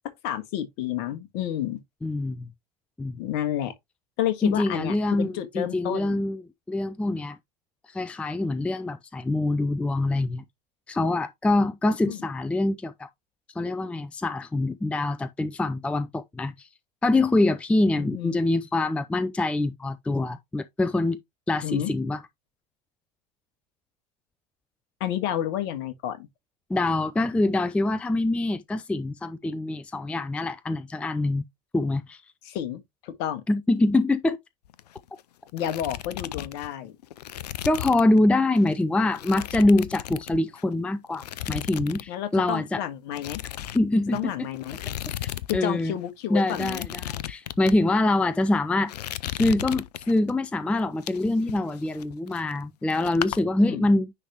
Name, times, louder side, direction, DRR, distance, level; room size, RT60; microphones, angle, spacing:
voice 1, 0.2-1.8 3.2-3.7 4.2-6.2 12.0-12.2 18.0-18.4 21.6-21.9 25.0-26.3 32.4-33.4 35.5-36.9 42.1-43.4 44.1-44.8 45.5-46.9 53.6-53.9, left 11 dB, 55° left, 1.5 m, -30 dB
voice 2, 2.0-2.5 3.0-3.2 4.4-6.4 6.7-7.4 7.9-10.4 10.9-13.1 13.6-16.7 17.0-21.2 21.5-22.2 26.7-31.4 31.7-32.2 33.5-34.4 37.7-42.8 43.7-44.3 45.5-45.9 46.3-48.9 49.3-54.1, left 2 dB, 5° left, 0.4 m, -24 dB
sound 1, 34.7-35.2 35.5-38.2 38.6-38.7 39.1-40.7 41.1-42.1 42.3-42.6 43.1-45.6 45.8-45.9 46.4-47.8 48.3-48.6 48.9-50.3 50.8-52.7 52.9-53.4, left 13 dB, 75° left, 0.5 m, -35 dB
9.8 x 3.5 x 2.9 m
hypercardioid pair, 85°, 21 cm